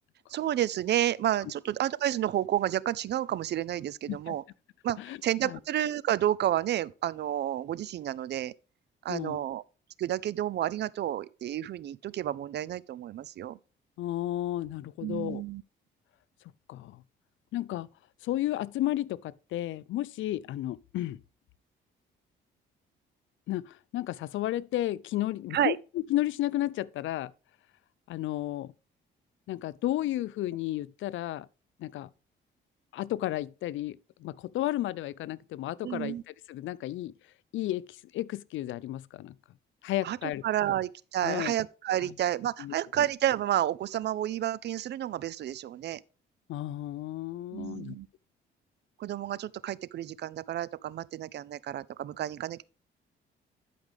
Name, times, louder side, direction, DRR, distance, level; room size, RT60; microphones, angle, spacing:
voice 1, 0.3-4.4 4.8-8.5 9.0-9.6 10.0-13.6 15.0-15.6 25.5-25.8 35.8-36.2 40.0-40.2 40.4-46.0 47.5-48.1 49.0-52.6, right 12 dB, 60° right, 0.5 m, -30 dB
voice 2, 9.1-9.4 14.0-15.4 16.7-17.0 17.5-17.9 18.2-21.2 23.5-27.3 28.1-28.7 29.5-31.5 31.8-32.1 32.9-37.1 37.5-39.4 39.8-40.4 41.2-41.5 42.0-42.1 42.6-43.0 46.5-48.0, left 14 dB, 75° left, 0.5 m, -33 dB
12.0 x 5.1 x 3.4 m
cardioid pair, 90°, 20 cm